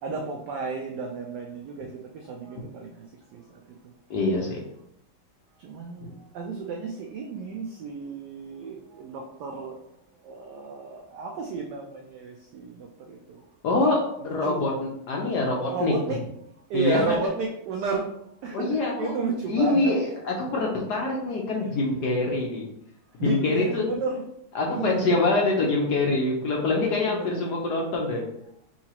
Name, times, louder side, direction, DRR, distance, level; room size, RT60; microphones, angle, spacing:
voice 1, 0.0-3.8 5.6-9.9 10.2-13.5 14.2-14.7 15.7-16.2 16.7-19.9 23.2-24.2 24.7-25.4 27.0-27.3, right 4 dB, 75° right, 1 dB, 1.0 m, -33 dB
voice 2, 4.1-4.6 13.6-15.9 16.7-17.0 18.5-19.1 19.5-22.7 23.2-23.8 24.5-28.2, left 2 dB, 65° left, -1 dB, 1.0 m, -25 dB
5.6 x 2.9 x 2.9 m, 0.73 s
omnidirectional pair, 2.4 m